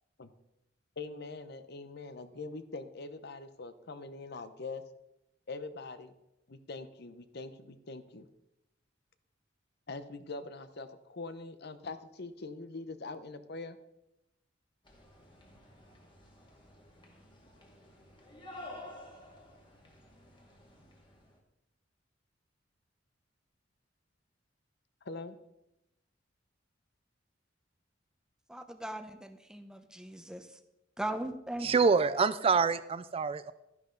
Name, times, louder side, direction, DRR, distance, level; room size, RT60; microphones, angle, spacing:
voice 1, 1.0-4.8 5.5-6.1 6.5-8.3 9.9-13.8 25.0-25.4, left 3 dB, 60° left, 11 dB, 0.8 m, -43 dB
sound 1, 14.8-21.4, left 1 dB, 25° left, 2.2 m, -52 dB
voice 2, 28.5-30.6 31.0-31.7, right 1 dB, 5° right, 8 dB, 0.8 m, -39 dB
voice 3, 31.6-33.5, right 5 dB, 30° right, 14 dB, 0.4 m, -26 dB
12.0 x 11.0 x 3.9 m, 0.89 s
head